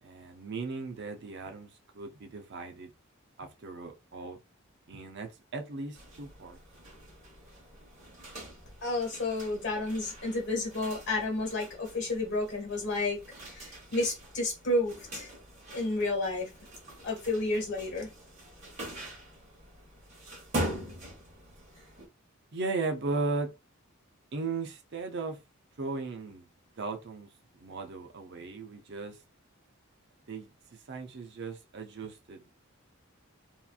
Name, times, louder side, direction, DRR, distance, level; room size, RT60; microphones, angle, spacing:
voice 1, 0.0-2.9 3.4-4.4 4.9-6.6 22.5-23.5 24.3-25.4 25.8-26.5 26.8-27.3 27.6-29.2 30.3-32.5, right 3 dB, 55° right, 0.5 m, -37 dB
sound 1, 5.9-22.1, right 1 dB, 35° right, 1.1 m, -43 dB
voice 2, 8.8-13.2 13.5-15.3 15.7-16.5 17.0-18.1, left 2 dB, 55° left, 1.4 m, -31 dB
2.9 x 2.5 x 2.3 m
head